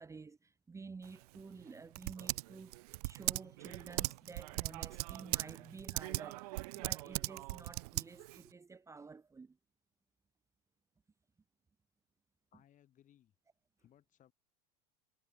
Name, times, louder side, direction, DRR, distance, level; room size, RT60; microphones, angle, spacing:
voice 1, 0.0-9.6, right 4 dB, 15° right, 1.0 m, -52 dB
Typing, 1.0-8.5, right 22 dB, 70° right, 0.5 m, -40 dB
voice 2, 12.5-13.3 13.8-14.3, left 11 dB, 40° left, 6.0 m, -66 dB
hypercardioid pair, 100°, 20 cm